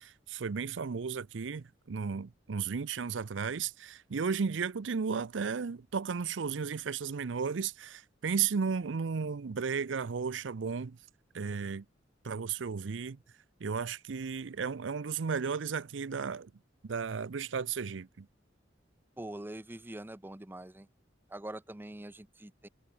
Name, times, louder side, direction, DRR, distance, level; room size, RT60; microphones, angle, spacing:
voice 1, 0.0-11.0 11.3-11.9 12.2-13.2 13.6-16.5 16.8-18.3, right 6 dB, 80° right, 0.5 m, -34 dB
voice 2, 19.2-20.9 21.3-22.7, right 1 dB, 10° right, 0.7 m, -44 dB
head